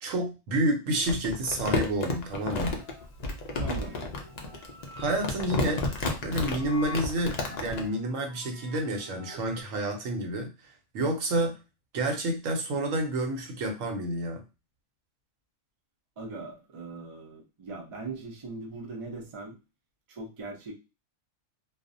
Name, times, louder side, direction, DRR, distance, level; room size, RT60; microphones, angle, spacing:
voice 1, 0.0-2.8 5.0-5.9 6.2-11.6 11.9-14.4, right 1 dB, 85° right, 3 dB, 1.0 m, -29 dB
Crumpling crinkling, 1.0-7.8, left 3 dB, 85° left, 0.3 m, -31 dB
sound 1, 1.2-9.6, left 3 dB, 35° left, 0.6 m, -48 dB
voice 2, 3.5-4.1 16.2-19.6 20.1-20.7, right 3 dB, 45° right, 0 dB, 0.4 m, -40 dB
2.4 x 2.0 x 2.5 m, 0.28 s
omnidirectional pair, 1.3 m